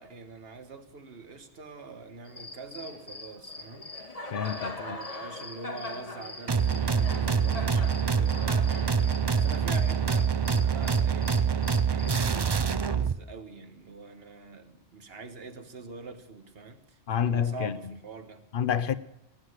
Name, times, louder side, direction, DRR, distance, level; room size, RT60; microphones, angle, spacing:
voice 1, 0.0-3.9 4.6-18.4, right 4 dB, 70° right, 1.5 m, -45 dB
Cricket, 2.2-12.3, left 2 dB, 35° left, 1.4 m, -41 dB
voice 2, 4.3-5.0 17.1-17.7 18.5-19.0, left 8 dB, 60° left, 0.9 m, -28 dB
sound 1, 6.5-13.2, right 6 dB, 35° right, 0.4 m, -25 dB
18.5 x 9.9 x 6.5 m
omnidirectional pair, 1.1 m